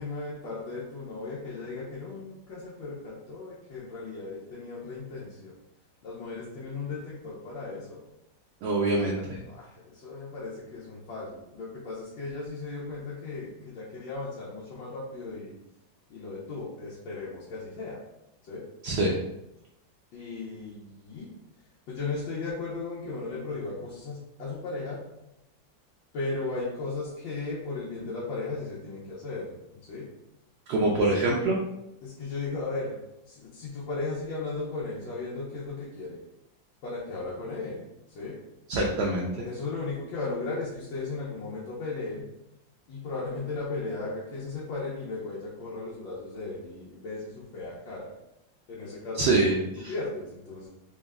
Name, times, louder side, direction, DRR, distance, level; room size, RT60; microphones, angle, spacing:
voice 1, 0.0-5.5 6.0-8.0 9.1-15.5 16.1-18.0 18.4-18.6 20.1-21.3 21.9-25.0 26.1-29.5 29.9-30.1 30.9-31.4 32.0-33.0 33.3-36.2 36.8-37.8 38.1-38.4 39.4-42.3 42.9-48.1 48.7-49.4 49.9-50.7, left 3 dB, 85° left, -7 dB, 1.6 m, -36 dB
voice 2, 8.6-9.4 18.8-19.1 30.7-31.6 38.7-39.3 49.2-49.9, right 2 dB, 70° right, -2 dB, 1.0 m, -25 dB
4.0 x 2.2 x 3.5 m, 0.87 s
omnidirectional pair, 2.1 m